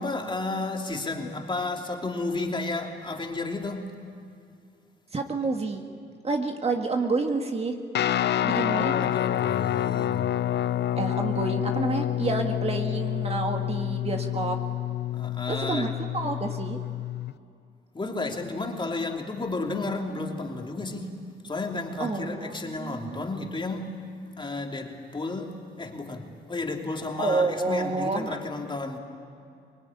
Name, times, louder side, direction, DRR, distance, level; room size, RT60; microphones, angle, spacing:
voice 1, 0.0-4.0 8.5-10.3 15.1-15.9 17.9-24.0 24.4-29.0, left 3 dB, 25° left, 2 dB, 3.1 m, -32 dB
voice 2, 5.1-5.8 6.2-7.8 8.4-8.9 11.0-14.6 15.5-16.8 22.0-23.3 27.2-28.4, right 3 dB, 30° right, 4 dB, 1.9 m, -29 dB
Guitar, 7.9-17.3, left 12 dB, 60° left, 0.6 m, -28 dB
24.5 x 20.5 x 9.8 m, 2.4 s
cardioid pair, 90°, 20 cm